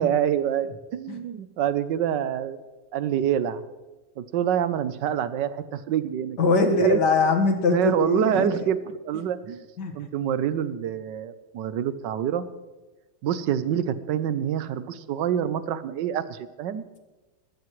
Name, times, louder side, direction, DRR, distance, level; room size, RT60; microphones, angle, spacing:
voice 1, 0.0-2.6 2.9-3.6 4.2-7.0 7.7-9.6 9.9-12.5 13.2-16.8, right 9 dB, 80° right, 13 dB, 1.4 m, -26 dB
voice 2, 6.4-8.6 9.8-9.9, left 4 dB, 70° left, 4 dB, 2.2 m, -22 dB
21.0 x 14.5 x 3.2 m, 1.2 s
omnidirectional pair, 1.9 m